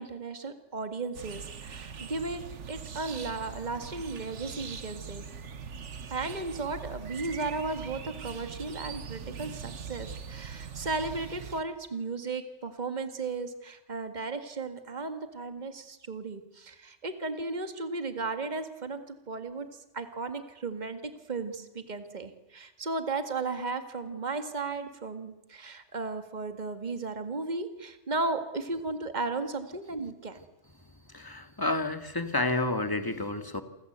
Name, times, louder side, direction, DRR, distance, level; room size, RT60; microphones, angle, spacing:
voice 1, 0.0-5.3 6.1-30.4, right 3 dB, 35° right, 8 dB, 2.0 m, -35 dB
sound 1, 1.1-11.6, right 6 dB, 75° right, 1.6 m, -42 dB
voice 2, 31.1-33.6, left 2 dB, 15° left, 9 dB, 2.0 m, -30 dB
29.0 x 24.0 x 8.1 m, 0.98 s
omnidirectional pair, 1.3 m